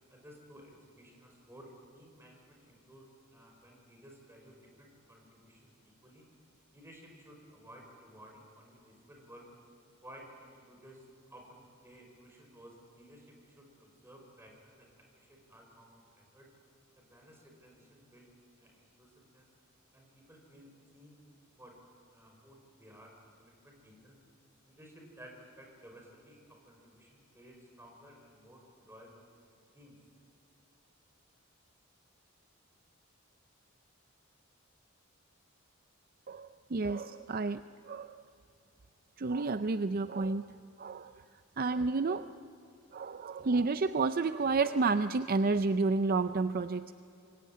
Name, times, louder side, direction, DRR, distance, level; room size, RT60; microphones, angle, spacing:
voice 1, 0.1-6.3 6.7-9.5 10.0-16.5 17.0-18.3 18.6-19.5 19.9-21.2 21.6-21.8 22.1-23.1 23.4-24.2 24.6-29.2 29.7-30.0, equal, 10° right, 1 dB, 5.5 m, -56 dB
voice 2, 36.3-38.2 39.2-41.2 41.6-42.3 42.9-46.9, right 3 dB, 45° right, 11 dB, 0.5 m, -31 dB
25.5 x 22.0 x 9.5 m, 2.6 s
head